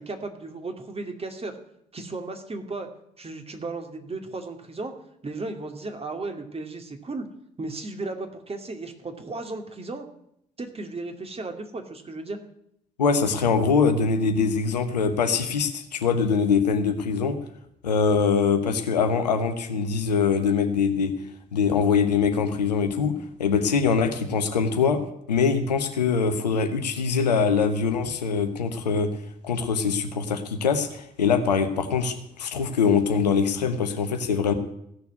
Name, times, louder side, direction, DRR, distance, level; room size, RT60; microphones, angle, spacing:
voice 1, 0.0-1.6 1.9-2.9 3.2-4.9 5.2-7.3 7.6-10.1 10.6-12.4, right 3 dB, 30° right, 5 dB, 2.5 m, -35 dB
voice 2, 13.0-17.4 17.8-21.1 21.5-25.0 25.3-29.1 29.4-34.5, left 5 dB, 85° left, 7 dB, 1.1 m, -23 dB
16.0 x 6.9 x 9.3 m, 0.74 s
figure-of-eight pair, 45°, 21 cm